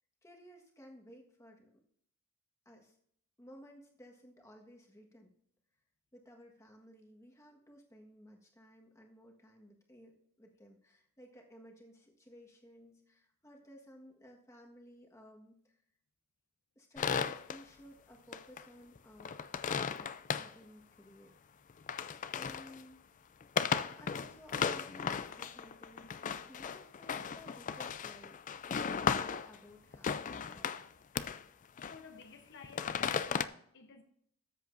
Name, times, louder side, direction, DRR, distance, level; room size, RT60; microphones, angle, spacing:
voice 1, 0.2-1.7 2.6-2.9 3.4-5.3 6.1-15.8 16.7-19.3 19.6-21.3 22.3-23.0 24.0-28.4 28.6-30.8, equal, 15° left, 1.4 m, -56 dB
sound 1, 17.0-17.6 18.3-18.6 19.0-20.5 21.7-22.8 23.4-29.6 29.9-30.9 31.2-31.4 31.8-32.2 32.6-33.5, left 6 dB, 35° left, 0.4 m, -36 dB
voice 2, 31.8-33.4 33.7-34.0, left 5 dB, 55° left, 0.8 m, -53 dB
13.5 x 7.8 x 2.6 m
head